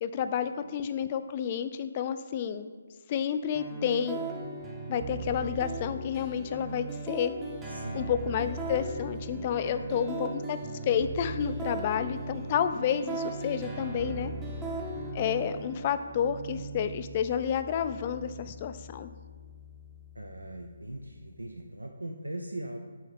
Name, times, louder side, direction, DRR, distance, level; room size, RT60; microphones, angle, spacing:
voice 1, 0.0-2.7 3.1-4.2 4.9-7.3 7.9-10.6 10.9-14.3 15.1-19.1, left 8 dB, 30° left, 10 dB, 0.3 m, -30 dB
sound 1, 3.6-21.5, right 2 dB, 15° right, 0.7 m, -39 dB
voice 2, 7.7-8.0 9.6-10.0 20.2-22.8, right 1 dB, 90° right, 3 dB, 0.4 m, -40 dB
6.3 x 2.8 x 5.6 m, 1.5 s
figure-of-eight pair, 145°, 0 cm